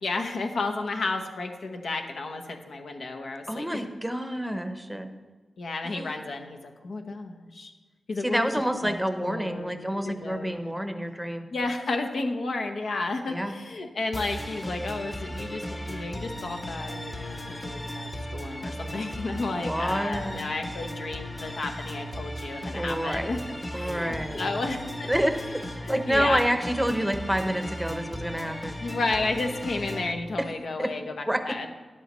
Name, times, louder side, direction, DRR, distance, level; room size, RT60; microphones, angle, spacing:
voice 1, 0.0-3.8 5.6-7.7 8.1-8.5 8.8-8.9 9.2-10.5 11.5-23.4 23.7-25.1 25.8-26.4 28.8-31.7, left 3 dB, 70° left, 4 dB, 0.9 m, -32 dB
voice 2, 3.5-5.1 5.8-6.1 8.2-11.5 13.3-13.5 19.6-20.4 22.7-23.3 23.7-24.7 25.1-25.6 25.9-28.7 30.4-30.5 30.8-30.9 31.3-31.4, equal, 5° right, 7 dB, 0.8 m, -28 dB
sound 1, 14.1-30.1, equal, 20° left, 1.0 m, -36 dB
13.5 x 11.0 x 3.1 m, 1.3 s
wide cardioid pair, 135°, 0 cm